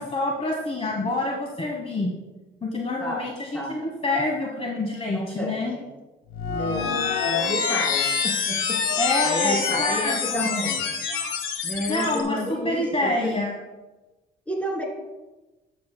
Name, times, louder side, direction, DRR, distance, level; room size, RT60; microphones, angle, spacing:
voice 1, 0.0-2.1 2.6-5.7 9.0-10.7 11.9-13.6, left 2 dB, 30° left, 0 dB, 1.2 m, -27 dB
voice 2, 3.0-3.8 5.1-5.9 6.6-7.0 7.2-8.8 9.2-10.8 11.6-13.3 14.5-14.8, equal, 5° left, -2 dB, 2.8 m, -31 dB
sound 1, 6.3-12.2, left 6 dB, 90° left, 1.2 m, -26 dB
12.0 x 7.4 x 2.2 m, 1.1 s
cardioid pair, 90°, 20 cm